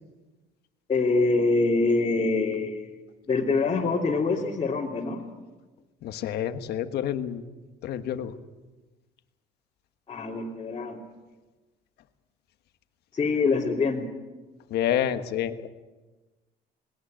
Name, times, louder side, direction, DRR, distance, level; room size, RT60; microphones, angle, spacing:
voice 1, 0.9-2.9 3.3-5.2 10.1-11.0 13.1-14.1, left 3 dB, 30° left, -5 dB, 2.9 m, -25 dB
voice 2, 6.0-7.4 7.8-8.3 14.7-15.7, left 10 dB, 75° left, 9 dB, 1.4 m, -28 dB
20.0 x 18.5 x 9.0 m, 1.2 s
cardioid pair, 110°, 17 cm